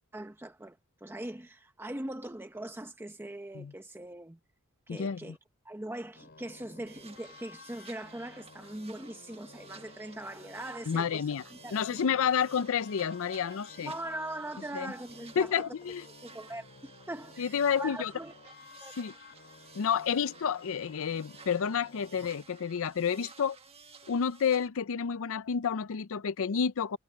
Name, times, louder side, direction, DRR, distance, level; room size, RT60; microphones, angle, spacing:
voice 1, 0.1-4.4 4.9-5.4 5.6-11.2 11.5-12.0 13.8-15.7 16.2-18.3 18.7-18.9, right 1 dB, 10° right, 0.8 m, -41 dB
voice 2, 4.9-5.4 10.9-11.4 11.7-13.9 14.7-14.9 15.4-16.0 17.4-18.1 18.9-19.1 19.7-23.6 24.1-27.0, left 7 dB, 65° left, 0.5 m, -30 dB
sound 1, 6.1-22.3, left 4 dB, 50° left, 3.3 m, -54 dB
sound 2, 6.9-24.7, right 5 dB, 30° right, 1.5 m, -55 dB
head